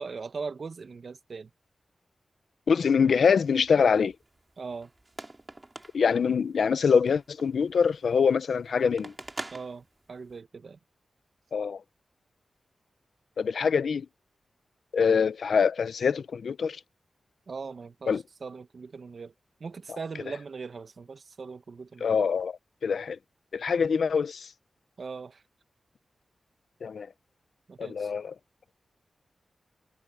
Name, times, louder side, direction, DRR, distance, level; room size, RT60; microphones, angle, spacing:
voice 1, 0.0-1.5 4.6-4.9 9.5-10.8 17.5-18.2 18.4-19.3 19.6-22.3 25.0-25.4 27.7-28.1, right 4 dB, 60° right, 1.4 m, -40 dB
voice 2, 2.7-4.1 5.9-9.1 11.5-11.8 13.4-14.1 14.9-16.8 18.1-18.2 22.0-23.2 23.5-24.5 26.8-27.1 27.8-28.3, left 6 dB, 80° left, 0.9 m, -24 dB
sound 1, 3.1-10.4, right 2 dB, 25° right, 3.7 m, -47 dB
cardioid pair, 75°, 0 cm